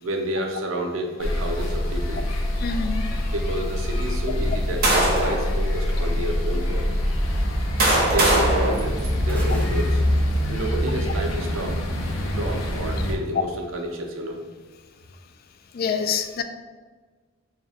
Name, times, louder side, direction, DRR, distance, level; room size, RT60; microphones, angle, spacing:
voice 1, 0.0-2.2 3.3-6.9 8.1-10.0 10.5-11.8 12.3-14.4, right 1 dB, 85° right, 2 dB, 0.7 m, -30 dB
sound 1, 1.2-13.1, equal, 85° left, 0.7 m, -25 dB
voice 2, 2.6-3.0 15.7-16.4, left 6 dB, 50° left, 8 dB, 0.3 m, -26 dB
sound 2, 4.3-5.5 6.2-6.4 7.3-9.6, right 1 dB, 50° right, 1.0 m, -22 dB
sound 3, 9.3-11.4, equal, 10° left, 0.8 m, -35 dB
4.5 x 2.2 x 3.5 m, 1.4 s
head